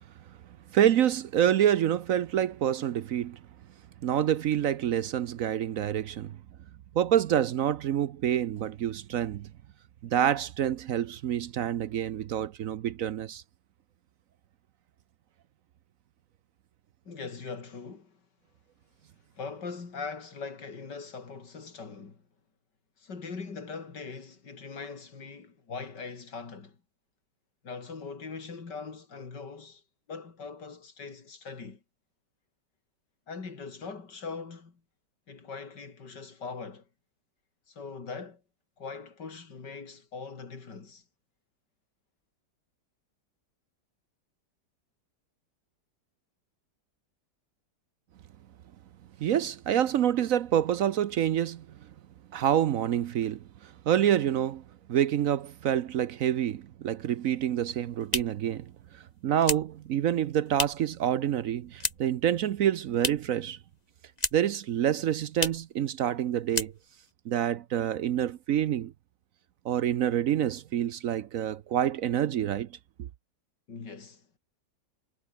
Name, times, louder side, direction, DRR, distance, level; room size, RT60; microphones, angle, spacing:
voice 1, 0.7-3.4 4.0-6.4 6.9-9.5 10.0-13.4 49.2-51.7 52.3-54.6 54.9-63.6 64.3-66.7 67.3-68.9 69.6-72.7 73.0-73.1, right 10 dB, 65° right, 1.0 m, -27 dB
voice 2, 17.1-18.2 19.4-22.2 23.0-26.8 27.6-29.8 30.1-31.8 33.3-34.8 35.3-36.9 37.7-38.4 38.8-41.0 73.7-74.3, left 4 dB, 80° left, 3.6 m, -41 dB
sound 1, 57.5-61.0 61.3-62.2 62.5-63.4 63.7-64.6 64.9-65.0 65.3-65.7 66.1-66.2 66.5-67.1, left 3 dB, 25° left, 2.0 m, -34 dB
omnidirectional pair, 1.8 m